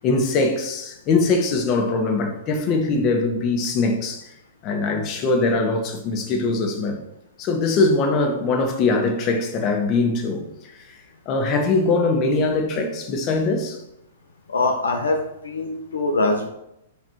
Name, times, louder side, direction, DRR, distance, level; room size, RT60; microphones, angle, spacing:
voice 1, 0.0-4.2 4.6-7.0 7.4-10.8 11.2-13.8, left 3 dB, 35° left, 1.5 m, -22 dB
voice 2, 14.5-16.5, left 2 dB, 75° left, 0.9 m, -23 dB
10.5 x 5.9 x 3.1 m
figure-of-eight pair, 105°, 0 cm